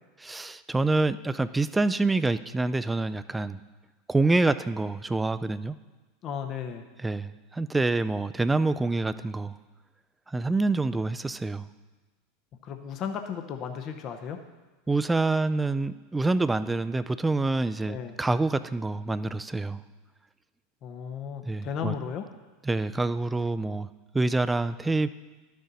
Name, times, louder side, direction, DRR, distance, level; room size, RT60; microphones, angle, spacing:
voice 1, 0.2-3.6 4.1-5.8 7.0-9.6 10.3-11.7 14.9-19.8 21.5-21.9 22.6-23.9 24.1-25.1, right 2 dB, 10° right, 13 dB, 0.4 m, -26 dB
voice 2, 6.2-6.9 12.6-14.4 17.9-18.1 20.8-22.2, left 7 dB, 45° left, 6 dB, 0.7 m, -35 dB
12.0 x 6.4 x 4.0 m, 1.2 s
hypercardioid pair, 95°, 0 cm